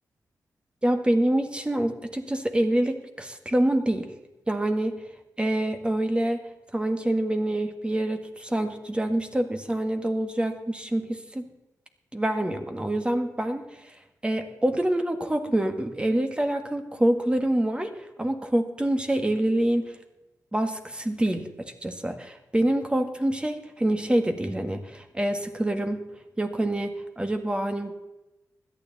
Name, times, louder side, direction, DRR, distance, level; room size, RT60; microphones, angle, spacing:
voice 1, 0.8-4.1 4.5-5.1 5.4-6.5 6.7-11.5 12.1-14.0 14.2-20.0 20.5-26.0 26.4-27.9, right 1 dB, 15° right, 6 dB, 1.6 m, -26 dB
16.5 x 12.0 x 4.0 m, 1.0 s
cardioid pair, 85°, 6 cm